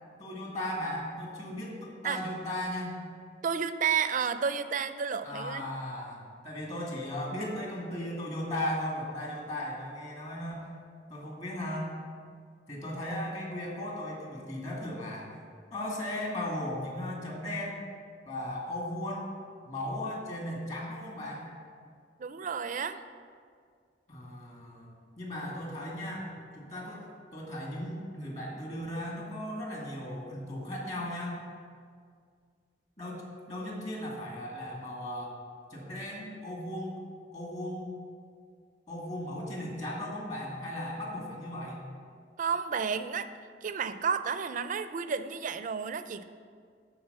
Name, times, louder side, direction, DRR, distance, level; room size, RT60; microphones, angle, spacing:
voice 1, 0.2-3.0 5.2-10.7 11.1-11.9 12.7-15.3 15.7-17.8 18.2-19.3 19.6-21.5 24.1-31.4 33.0-35.3 35.7-37.0 37.3-38.0 38.9-41.8, left 1 dB, 40° left, -3 dB, 2.3 m, -37 dB
voice 2, 3.4-5.6 22.2-23.0 42.4-43.3 43.6-46.3, right 6 dB, 45° right, 11 dB, 0.4 m, -31 dB
12.5 x 4.2 x 6.8 m, 2.1 s
head